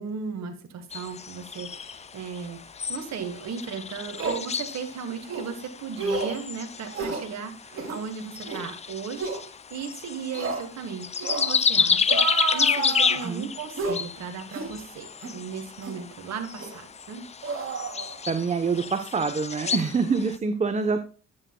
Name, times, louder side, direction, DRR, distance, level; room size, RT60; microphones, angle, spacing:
voice 1, 0.0-17.3 19.5-19.8, right 6 dB, 60° right, 6 dB, 1.4 m, -36 dB
sound 1, 0.9-20.4, left 6 dB, 25° left, 0.4 m, -30 dB
sound 2, 3.5-3.6 4.2-4.4 5.3-5.5 6.0-6.4 6.9-7.3 7.7-8.0 8.4-8.6 9.2-9.4 10.3-10.6 11.2-11.6 12.1-13.3 13.8-14.0 14.5-14.7 15.2-15.4 15.8-16.0 16.6-16.8 17.4-18.5 18.8-18.9, right 4 dB, 45° right, 2.5 m, -31 dB
voice 2, 18.3-21.0, right 5 dB, 25° right, 8 dB, 0.8 m, -26 dB
10.5 x 7.8 x 2.2 m, 0.37 s
cardioid pair, 90°, 30 cm